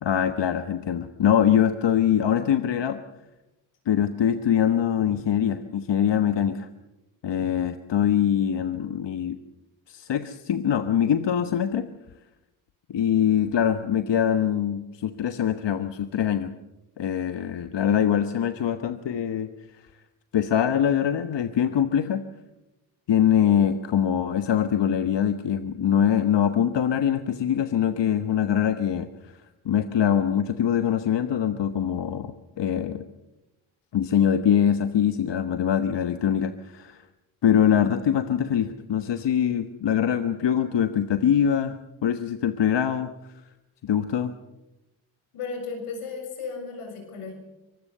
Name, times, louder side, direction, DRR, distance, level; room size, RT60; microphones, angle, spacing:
voice 1, 0.0-3.0 3.8-6.7 7.2-9.4 9.9-11.9 12.9-16.5 17.0-19.5 20.3-22.2 23.1-29.3 29.6-33.0 33.9-37.0 37.4-43.1 43.8-44.3, left 9 dB, 60° left, 9 dB, 1.3 m, -23 dB
voice 2, 45.3-47.3, left 4 dB, 85° left, 4 dB, 6.9 m, -34 dB
25.0 x 19.5 x 6.8 m, 0.97 s
supercardioid pair, 60°, 49 cm